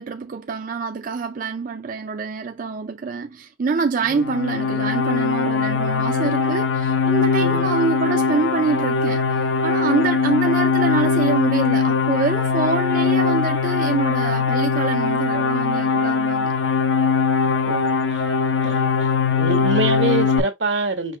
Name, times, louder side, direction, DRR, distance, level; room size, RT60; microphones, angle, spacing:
voice 1, 0.0-16.5, right 4 dB, 50° right, 0.4 m, -25 dB
sound 1, 4.1-20.4, left 5 dB, 85° left, 0.8 m, -21 dB
voice 2, 7.4-7.7 17.6-18.2 18.6-18.9 19.4-21.2, right 2 dB, 85° right, 1.4 m, -25 dB
5.3 x 2.9 x 3.4 m
head